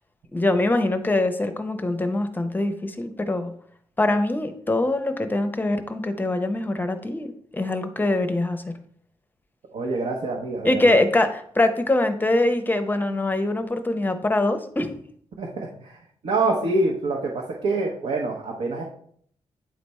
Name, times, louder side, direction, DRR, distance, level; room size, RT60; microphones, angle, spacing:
voice 1, 0.3-3.5 4.0-8.8 10.6-15.0, left 2 dB, 15° left, 8 dB, 0.6 m, -23 dB
voice 2, 9.7-11.0 15.4-16.0 16.2-18.8, right 2 dB, 80° right, -1 dB, 1.1 m, -26 dB
9.0 x 3.4 x 4.2 m, 0.62 s
cardioid pair, 115°, 11 cm